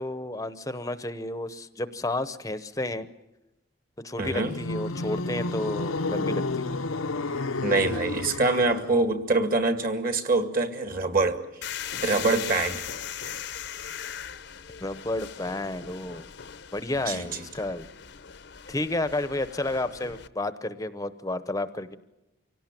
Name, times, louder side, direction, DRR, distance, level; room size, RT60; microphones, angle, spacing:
voice 1, 0.0-3.1 4.0-6.7 14.8-16.3 16.7-17.9 18.7-22.0, left 2 dB, 15° left, 12 dB, 0.8 m, -31 dB
voice 2, 4.2-4.6 7.6-11.4 12.0-12.9 17.1-17.4, right 3 dB, 45° right, 8 dB, 2.0 m, -25 dB
sound 1, 4.4-9.0, left 3 dB, 85° left, 0.8 m, -30 dB
sound 2, 11.6-20.3, left 9 dB, 55° left, 0.7 m, -39 dB
25.0 x 17.5 x 9.0 m, 0.98 s
head